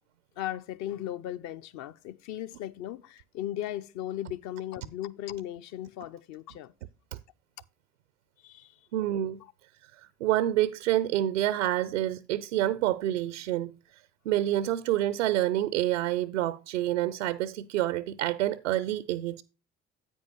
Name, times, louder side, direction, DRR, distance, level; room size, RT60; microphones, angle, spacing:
voice 1, 0.4-6.7 8.4-8.9 9.4-9.5, left 12 dB, 50° left, 0.6 m, -37 dB
voice 2, 8.9-9.4 10.2-13.7 14.3-19.4, right 13 dB, 75° right, 0.5 m, -27 dB
9.7 x 8.9 x 3.0 m
figure-of-eight pair, 50°, 37 cm